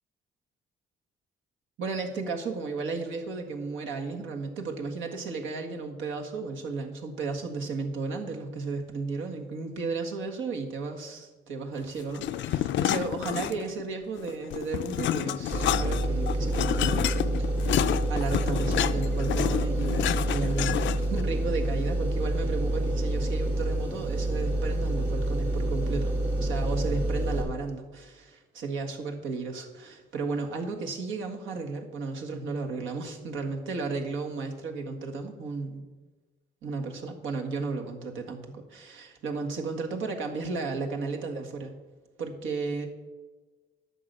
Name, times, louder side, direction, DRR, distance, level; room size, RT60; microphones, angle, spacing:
voice 1, 1.8-35.9 36.6-41.8 42.2-42.9, right 4 dB, 80° right, 2 dB, 1.8 m, -34 dB
sound 1, 12.1-13.8 14.2-21.2, left 12 dB, 70° left, 0.5 m, -29 dB
sound 2, 15.5-27.4, right 1 dB, 60° right, 3.7 m, -28 dB
11.0 x 6.8 x 6.7 m, 1.3 s
cardioid pair, 90°, 20 cm